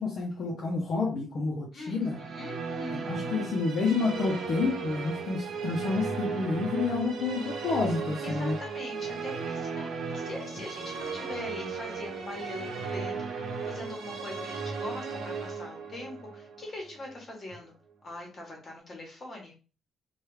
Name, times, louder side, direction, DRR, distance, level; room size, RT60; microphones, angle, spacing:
voice 1, 0.0-2.2 2.9-8.6, left 4 dB, 50° left, -1 dB, 0.6 m, -29 dB
voice 2, 1.7-3.3 8.2-17.7 18.0-19.5, left 2 dB, 30° left, 0 dB, 1.1 m, -42 dB
Musical instrument, 2.0-17.4, right 5 dB, 65° right, 0.8 m, -36 dB
3.1 x 2.3 x 3.2 m, 0.35 s
cardioid pair, 155°, 0 cm